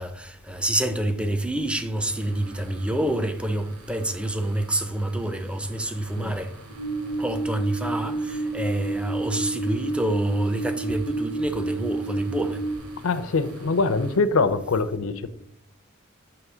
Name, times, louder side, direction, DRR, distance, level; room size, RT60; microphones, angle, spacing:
voice 1, 0.0-6.5 7.2-12.6, right 1 dB, 5° right, 0.5 m, -27 dB
sound 1, 1.9-14.2, right 1 dB, 85° right, 1.7 m, -45 dB
sound 2, 6.7-12.8, right 3 dB, 60° right, 1.3 m, -29 dB
voice 2, 13.0-15.3, left 3 dB, 65° left, 0.6 m, -23 dB
7.9 x 3.0 x 6.1 m
head